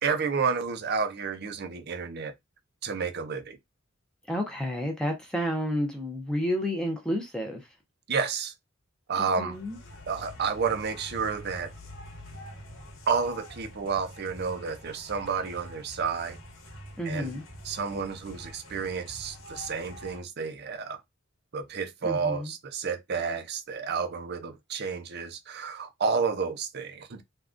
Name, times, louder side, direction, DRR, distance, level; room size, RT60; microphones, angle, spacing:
voice 1, 0.0-2.3 2.8-3.6 8.1-8.5 9.1-9.6 10.1-11.7 13.1-16.4 17.0-17.3 17.6-21.0 21.5-27.2, right 5 dB, 50° right, 0.5 m, -30 dB
voice 2, 4.3-7.6 9.2-9.8 17.0-17.4 22.0-22.5, equal, 5° left, 0.5 m, -30 dB
sound 1, 9.5-20.2, equal, 75° left, 1.0 m, -46 dB
3.5 x 2.3 x 2.4 m
head